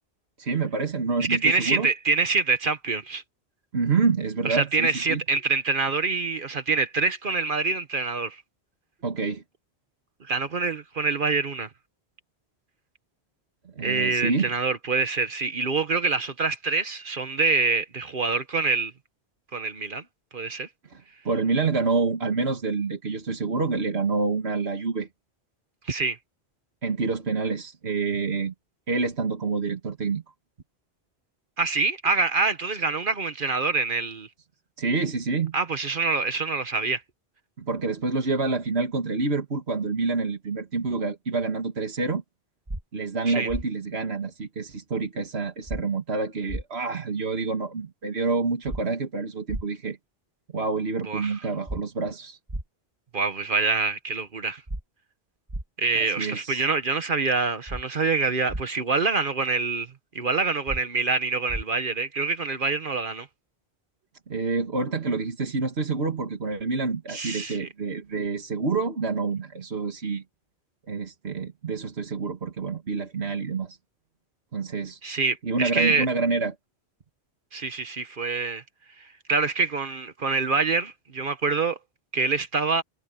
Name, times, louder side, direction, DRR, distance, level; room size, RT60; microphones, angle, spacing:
voice 1, 0.4-1.9 3.7-5.2 9.0-9.4 13.8-14.5 20.9-25.1 26.8-28.5 28.9-30.2 34.8-35.6 37.6-42.2 42.9-50.0 50.5-52.4 56.0-56.7 64.3-70.2 70.9-73.8 74.5-75.0 75.4-76.5, right 4 dB, 75° right, 2.1 m, -27 dB
voice 2, 1.2-3.2 4.4-8.4 10.2-11.7 13.8-18.9 19.5-20.0 20.3-20.7 25.8-26.2 31.6-34.3 35.5-37.0 43.3-43.5 51.1-51.3 53.1-54.6 55.8-63.3 67.1-67.7 75.0-76.1 77.5-78.6 79.3-81.8 82.1-82.8, right 4 dB, 55° right, 1.3 m, -25 dB
sound 1, 42.7-42.8 43.5-43.6 45.7-45.8 46.5-46.6 48.7-48.8 49.5-49.6 51.7-51.8 52.5-52.6 54.7-54.8 55.5-55.6 57.7-57.8 58.5-58.6 60.7-60.8 61.5-61.6, right 1 dB, 25° right, 2.1 m, -32 dB
omnidirectional pair, 1.1 m